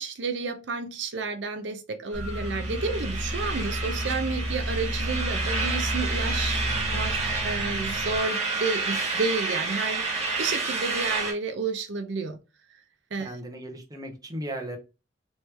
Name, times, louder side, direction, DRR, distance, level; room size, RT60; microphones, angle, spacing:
voice 1, 0.0-7.1 7.4-12.4 13.1-13.3, right 4 dB, 75° right, 7 dB, 0.6 m, -31 dB
sound 1, 2.1-8.2, equal, 10° left, 1.3 m, -31 dB
sound 2, 2.2-11.3, right 3 dB, 35° right, 1.5 m, -30 dB
voice 2, 13.2-14.8, right 1 dB, 20° right, 3 dB, 0.7 m, -36 dB
3.1 x 3.1 x 3.3 m, 0.29 s
head